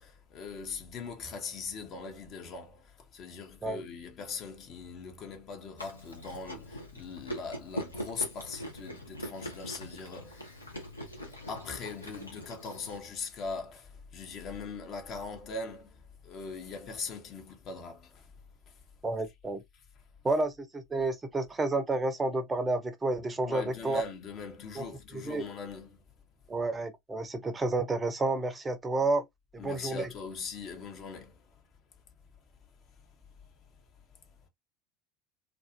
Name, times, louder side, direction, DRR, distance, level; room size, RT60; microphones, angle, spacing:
voice 1, 0.0-10.7 11.0-18.3 18.7-18.8 23.4-26.0 29.6-31.5, left 4 dB, 40° left, 0.8 m, -41 dB
Chewing mastication, 5.8-13.0, equal, 85° left, 0.7 m, -42 dB
voice 2, 19.0-19.6 20.2-24.0 24.8-24.9 25.2-25.5 26.5-29.2 29.5-30.1, right 2 dB, 20° right, 0.6 m, -30 dB
2.5 x 2.3 x 2.4 m
figure-of-eight pair, 70°, 0 cm